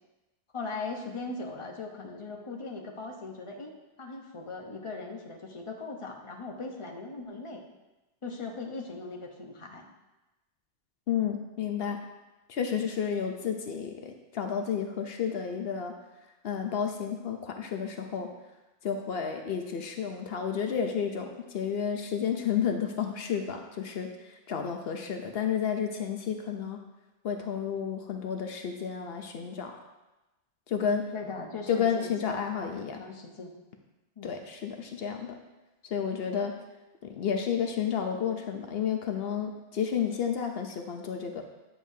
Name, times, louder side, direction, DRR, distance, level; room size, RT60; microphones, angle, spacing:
voice 1, 0.5-3.7 4.0-7.6 8.2-9.9 31.1-33.6 34.2-34.3, left 3 dB, 30° left, 0 dB, 0.9 m, -39 dB
voice 2, 11.1-12.0 12.5-15.9 16.4-18.3 18.8-26.8 27.2-29.7 30.7-31.0 31.7-33.0 34.2-35.3 35.9-36.5 37.0-41.4, left 7 dB, 70° left, 4 dB, 0.9 m, -31 dB
9.0 x 6.6 x 2.7 m, 1.1 s
omnidirectional pair, 1.1 m